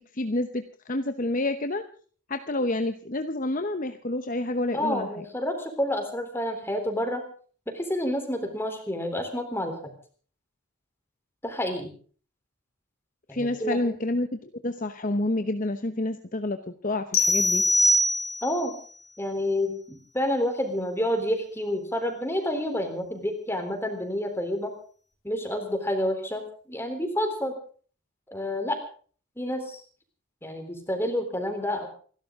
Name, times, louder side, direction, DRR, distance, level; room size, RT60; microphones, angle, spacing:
voice 1, 0.1-0.6 0.9-1.8 2.3-5.1 13.3-17.6, left 2 dB, 35° left, 8 dB, 0.9 m, -28 dB
voice 2, 4.7-7.2 7.7-9.9 11.4-11.9 13.3-13.8 18.4-18.7 19.2-24.7 25.2-26.4 26.7-27.6 28.3-28.8 29.4-29.8 30.4-31.9, left 1 dB, 10° left, 5 dB, 3.5 m, -29 dB
sound 1, 17.1-18.7, left 1 dB, 75° left, 3.8 m, -22 dB
28.5 x 12.0 x 3.7 m, 0.43 s
head